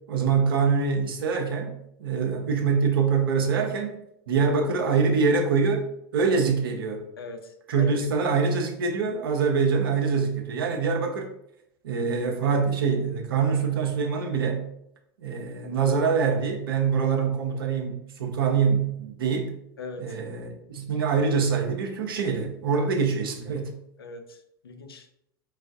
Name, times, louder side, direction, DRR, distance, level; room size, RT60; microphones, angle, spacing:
voice 1, 0.1-4.0 4.3-5.9 6.1-7.0 7.7-11.3 11.8-14.7 15.2-19.6 20.0-23.7, right 5 dB, 70° right, 2 dB, 0.9 m, -24 dB
voice 2, 7.2-8.0 19.8-20.2 22.7-22.8 24.0-24.4 24.6-25.1, left 3 dB, 80° left, 7 dB, 0.6 m, -40 dB
4.9 x 2.5 x 3.5 m, 0.77 s
figure-of-eight pair, 80°, 12 cm